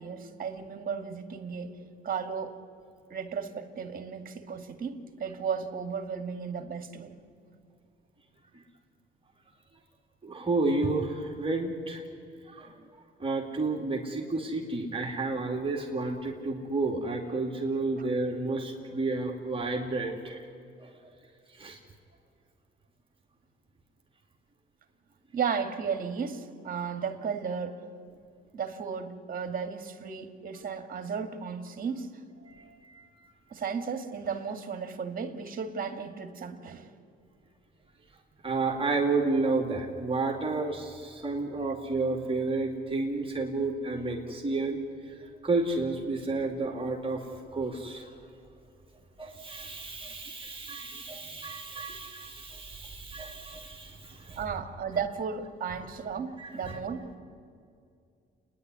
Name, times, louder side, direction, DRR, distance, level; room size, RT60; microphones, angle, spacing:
voice 1, 0.0-1.7 2.0-2.6 3.1-7.2 18.0-18.1 25.3-27.8 28.5-32.1 33.5-36.9 41.5-41.6 51.9-52.0 54.4-57.2, right 6 dB, 45° right, 7 dB, 2.3 m, -34 dB
voice 2, 10.2-12.0 12.5-12.7 13.2-20.4 20.8-20.9 21.5-21.8 32.5-33.1 38.4-44.8 45.1-47.3 47.5-48.1 49.2-54.4 56.4-56.8, right 3 dB, 25° right, 0 dB, 2.6 m, -31 dB
29.5 x 10.5 x 9.7 m, 2.4 s
cardioid pair, 90°, 20 cm